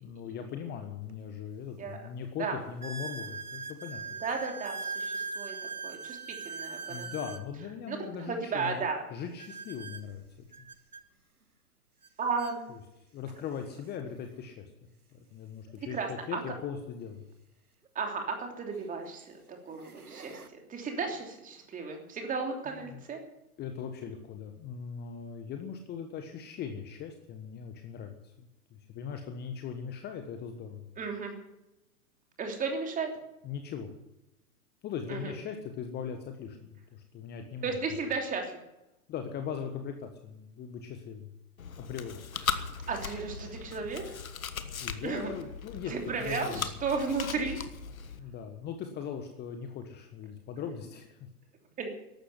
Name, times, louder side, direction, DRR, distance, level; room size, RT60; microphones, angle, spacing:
voice 1, 0.0-4.0 6.9-10.5 12.7-12.8 13.1-17.2 22.7-23.0 23.6-28.5 28.9-30.8 33.4-33.9 34.8-37.8 39.1-41.3 41.8-42.2 44.8-45.9 46.2-46.7 48.2-51.2, left 7 dB, 20° left, 6 dB, 1.4 m, -40 dB
sound 1, 1.1-1.2 1.8-1.9 2.8-7.5 9.4-11.0 12.0-12.1 12.4-12.6 13.4-13.5 15.7-15.8 17.9-18.0 18.7-19.0 19.5-20.5, right 4 dB, 80° right, 1.5 m, -41 dB
voice 2, 4.2-5.5 5.8-7.1 7.9-9.0 12.2-12.7 15.9-16.4 17.9-20.4 20.7-23.2 31.0-31.4 32.4-33.1 35.1-35.3 37.6-38.6 42.5-44.2 45.0-45.3 45.9-47.6 51.8-51.9, right 4 dB, 20° right, 3 dB, 3.2 m, -34 dB
Chewing mastication, 41.6-48.2, left 6 dB, 65° left, 1.4 m, -38 dB
14.5 x 12.0 x 8.1 m, 0.91 s
figure-of-eight pair, 105°, 44 cm